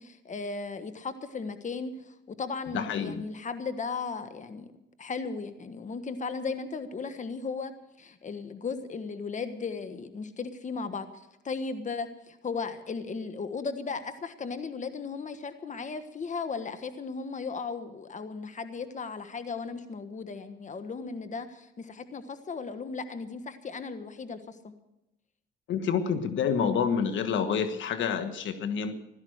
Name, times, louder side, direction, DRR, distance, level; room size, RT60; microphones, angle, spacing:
voice 1, 0.0-4.7 5.0-7.7 8.0-24.7, left 4 dB, 40° left, 10 dB, 1.4 m, -36 dB
voice 2, 2.7-3.2 25.7-29.0, left 7 dB, 70° left, 9 dB, 1.4 m, -28 dB
16.5 x 12.5 x 6.4 m, 0.90 s
cardioid pair, 90°, 20 cm